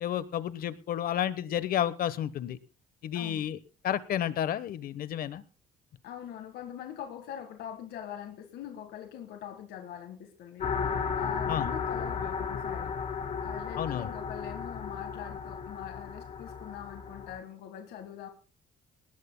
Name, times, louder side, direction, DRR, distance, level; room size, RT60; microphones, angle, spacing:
voice 1, 0.0-2.6 3.0-3.6 3.8-5.4 11.5-11.7 13.8-14.1, left 10 dB, 60° left, 15 dB, 1.2 m, -31 dB
voice 2, 3.1-3.5 6.0-12.9 13.4-18.3, left 10 dB, 75° left, 6 dB, 1.8 m, -43 dB
sound 1, 10.6-17.4, left 6 dB, 45° left, 2.7 m, -34 dB
20.0 x 18.5 x 2.3 m, 0.35 s
cardioid pair, 110°, 17 cm